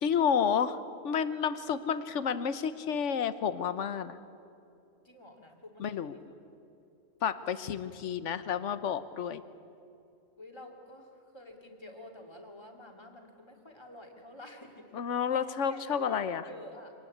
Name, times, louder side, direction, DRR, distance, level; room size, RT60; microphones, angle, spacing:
voice 1, 0.0-0.8 1.0-4.1 5.8-6.2 7.2-9.4 14.9-16.4, left 7 dB, 65° left, 13 dB, 1.2 m, -30 dB
voice 2, 5.0-6.3 10.4-14.8 15.4-16.9, left 1 dB, 20° left, 2 dB, 2.6 m, -49 dB
25.5 x 19.0 x 8.5 m, 2.7 s
omnidirectional pair, 1.4 m